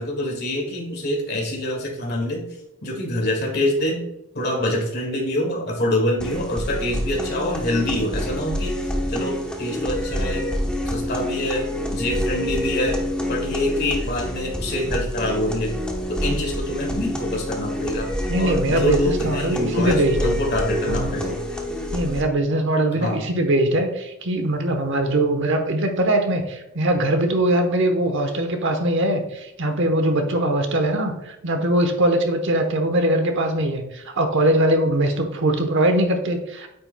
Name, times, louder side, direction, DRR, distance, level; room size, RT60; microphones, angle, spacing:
voice 1, 0.0-4.0 4.3-8.8 9.1-10.5 10.9-11.6 11.9-15.7 16.1-18.1 18.4-21.4 23.0-23.2, left 1 dB, 50° left, -1 dB, 1.9 m, -25 dB
sound 1, 6.2-22.2, equal, 5° left, 0.9 m, -27 dB
voice 2, 18.3-20.3 20.9-21.1 21.9-36.7, right 1 dB, 60° right, 6 dB, 1.0 m, -21 dB
8.7 x 6.6 x 2.2 m, 0.88 s
head